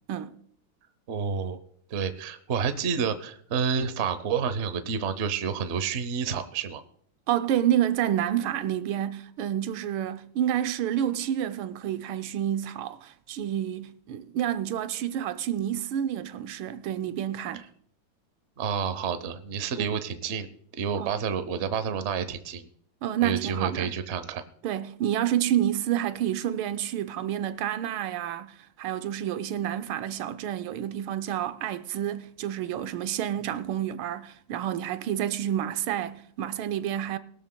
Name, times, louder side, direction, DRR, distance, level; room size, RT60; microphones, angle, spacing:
voice 1, 1.1-1.6 1.9-6.8 18.6-20.5 20.8-22.7 23.2-24.4, right 6 dB, 55° right, 0.8 m, -29 dB
voice 2, 7.3-17.6 19.8-19.9 20.9-21.1 23.0-23.9 24.6-37.2, right 11 dB, 85° right, 1.5 m, -29 dB
20.5 x 12.5 x 2.2 m
omnidirectional pair, 2.2 m